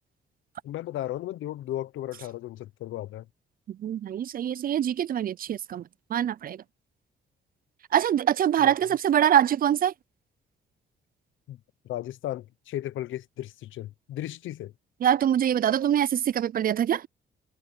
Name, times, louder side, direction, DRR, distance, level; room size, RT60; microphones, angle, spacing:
voice 1, 0.6-3.3 8.6-8.7 11.5-11.6 11.8-14.7, left 13 dB, 80° left, 0.9 m, -35 dB
voice 2, 3.7-5.8 6.1-6.6 7.9-9.9 15.0-17.1, right 10 dB, 45° right, 0.4 m, -24 dB
cardioid pair, 90°, 20 cm